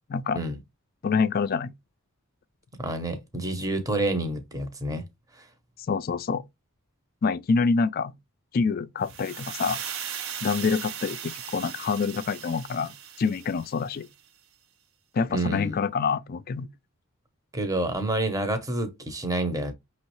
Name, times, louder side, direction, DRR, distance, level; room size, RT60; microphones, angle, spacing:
voice 1, 1.0-1.7 5.9-6.4 7.2-8.1 8.5-9.8 10.4-14.1 15.1-16.7, left 5 dB, 45° left, 0.3 m, -26 dB
voice 2, 2.8-5.0 5.3-5.5 15.3-15.8 17.5-19.7, right 1 dB, 15° right, 0.8 m, -28 dB
sound 1, 9.0-14.1, right 8 dB, 65° right, 0.7 m, -38 dB
5.6 x 3.0 x 3.0 m
head